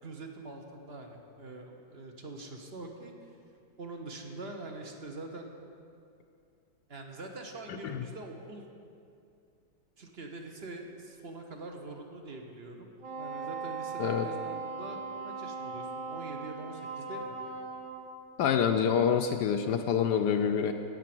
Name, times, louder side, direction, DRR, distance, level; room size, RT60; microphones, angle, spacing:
voice 1, 0.0-3.1 3.8-5.6 6.9-8.6 10.0-12.9 13.2-15.0 15.2-17.4, right 2 dB, 40° right, 3 dB, 1.1 m, -44 dB
Wind instrument woodwind instrument, 13.0-18.1, right 4 dB, 75° right, 1.8 m, -39 dB
voice 2, 18.4-20.7, left 7 dB, 75° left, 6 dB, 1.1 m, -26 dB
16.0 x 6.7 x 6.0 m, 2.5 s
omnidirectional pair, 1.9 m